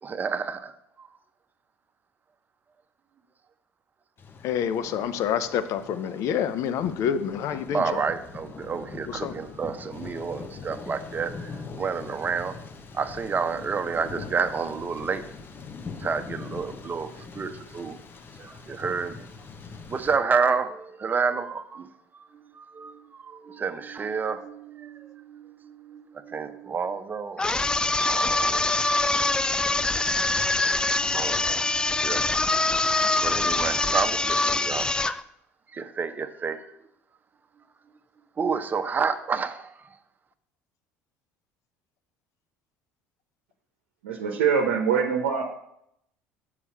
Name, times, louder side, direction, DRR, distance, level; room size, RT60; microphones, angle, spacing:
voice 1, 0.0-0.7 1.0-1.1 7.7-12.6 12.9-15.2 16.0-18.0 18.4-19.3 19.9-21.9 22.1-27.4 28.0-28.6 29.2-29.3 31.1-32.5 33.2-34.9 35.7-36.6 38.4-39.7, right 5 dB, 30° right, 9 dB, 0.8 m, -30 dB
Thunder, 4.2-20.2, left 4 dB, 35° left, 0.9 m, -42 dB
voice 2, 4.4-8.0 9.1-9.3, left 8 dB, 60° left, 12 dB, 0.7 m, -27 dB
sound 1, 27.4-35.2, left 2 dB, 15° left, 0.4 m, -24 dB
voice 3, 44.0-45.4, right 6 dB, 85° right, 2 dB, 0.8 m, -23 dB
7.1 x 4.9 x 6.9 m, 0.76 s
hypercardioid pair, 70°, 6 cm